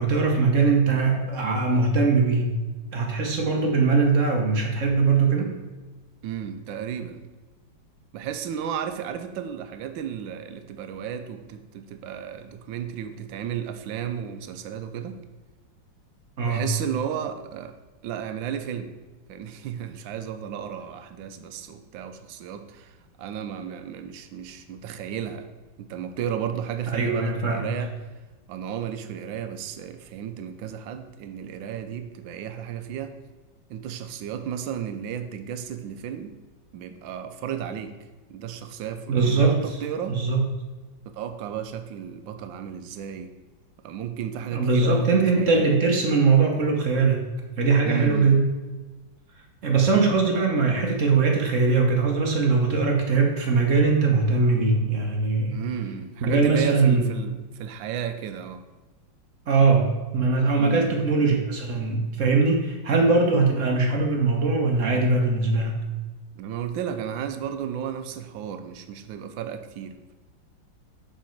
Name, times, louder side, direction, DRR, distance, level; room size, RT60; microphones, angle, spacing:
voice 1, 0.0-2.5 2.9-5.5 16.4-16.6 26.9-27.7 39.1-39.6 40.1-40.5 44.5-47.2 47.6-48.5 49.6-55.6 56.2-57.0 59.5-65.7, right 4 dB, 50° right, 1 dB, 1.1 m, -21 dB
voice 2, 6.2-7.2 8.1-15.2 16.5-17.7 18.0-18.9 19.3-22.9 23.2-25.5 25.8-27.9 28.5-33.1 33.7-36.3 36.7-37.9 38.3-40.2 41.1-43.3 43.8-45.8 47.8-48.4 49.9-50.2 55.5-58.6 60.6-60.9 66.4-70.1, right 9 dB, 80° right, 9 dB, 1.4 m, -33 dB
7.2 x 5.2 x 4.5 m, 1.2 s
omnidirectional pair, 2.1 m